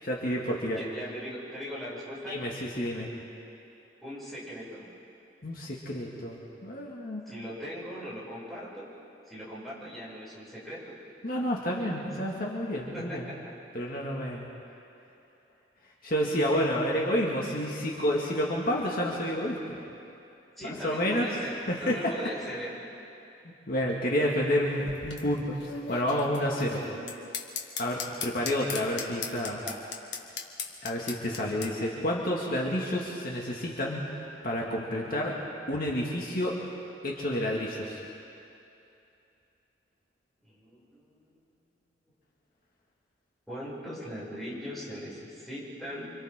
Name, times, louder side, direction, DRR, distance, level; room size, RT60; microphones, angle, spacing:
voice 1, 0.0-0.8 2.3-3.1 5.4-7.2 11.2-13.3 13.7-14.5 16.0-19.8 20.6-21.3 21.7-22.1 23.4-26.8 27.8-29.6 30.8-34.1 34.4-35.4 35.7-36.6 37.0-38.0, equal, 55° left, -3 dB, 2.2 m, -29 dB
voice 2, 0.8-2.4 4.0-4.9 7.3-8.9 9.3-11.0 11.9-12.1 12.9-13.4 14.7-14.8 20.6-21.5 21.8-22.8 29.6-29.8 40.4-41.2 43.5-46.1, equal, ahead, -9 dB, 7.1 m, -39 dB
sound 1, 24.6-31.7, left 6 dB, 75° left, 1.7 m, -38 dB
29.0 x 25.5 x 3.8 m, 2.7 s
head